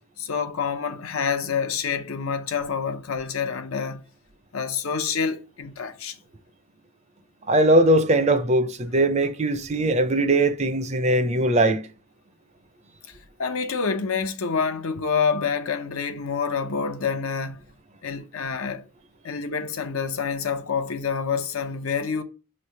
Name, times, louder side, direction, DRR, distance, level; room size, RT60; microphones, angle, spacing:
voice 1, 0.2-4.0 4.5-6.2 13.1-17.6 18.0-18.8 19.2-22.2, left 6 dB, 70° left, 0.7 m, -27 dB
voice 2, 7.5-11.8, right 1 dB, 30° right, 0.5 m, -20 dB
6.2 x 3.2 x 5.6 m
head